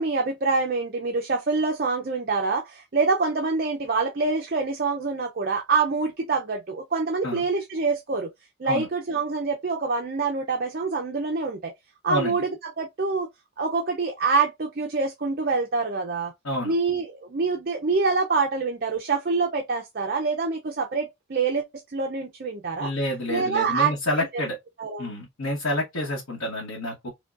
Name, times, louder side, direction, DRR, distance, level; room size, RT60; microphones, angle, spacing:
voice 1, 0.0-8.3 8.6-11.7 12.0-13.3 13.6-16.3 16.6-21.6 21.9-22.9 23.3-24.4 24.8-25.1, right 4 dB, 45° right, 0.5 m, -26 dB
voice 2, 12.1-12.4 16.4-16.7 22.8-24.6 25.0-27.1, left 1 dB, 90° left, 1.1 m, -28 dB
5.0 x 2.2 x 2.4 m
head